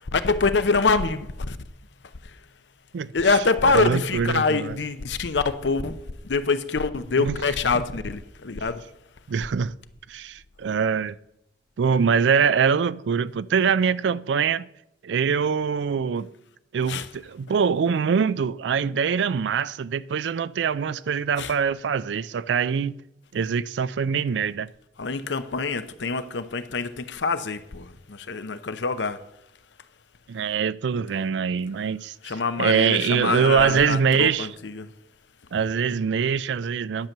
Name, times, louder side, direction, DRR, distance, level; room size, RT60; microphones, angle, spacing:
voice 1, 0.1-1.6 3.1-6.0 6.2-8.8 16.9-17.1 21.4-21.5 25.0-29.2 32.2-34.9, left 4 dB, 80° left, 0.7 m, -25 dB
voice 2, 3.7-4.8 7.2-7.4 7.7-7.8 9.3-9.7 10.1-11.2 11.8-14.7 15.0-16.3 16.7-23.0 23.3-24.7 30.3-34.5 35.5-37.1, right 6 dB, 80° right, 0.4 m, -23 dB
10.5 x 5.9 x 6.6 m
head